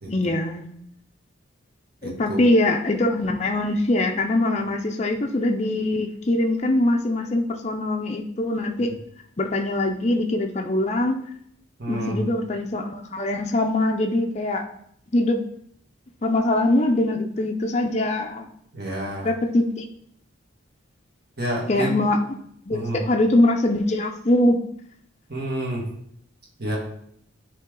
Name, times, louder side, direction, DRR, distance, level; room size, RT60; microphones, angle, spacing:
voice 1, 0.1-0.6 2.0-8.9 9.4-11.2 11.9-14.7 15.1-15.4 16.2-18.5 19.2-19.9 21.7-22.2 22.7-24.6, left 1 dB, 30° left, 3 dB, 0.5 m, -22 dB
voice 2, 2.0-2.4 11.8-12.2 18.7-19.3 21.4-21.9 22.7-23.0 25.3-25.8 26.6-26.8, right 1 dB, 50° right, -2 dB, 1.9 m, -29 dB
9.5 x 3.4 x 3.7 m, 0.70 s
head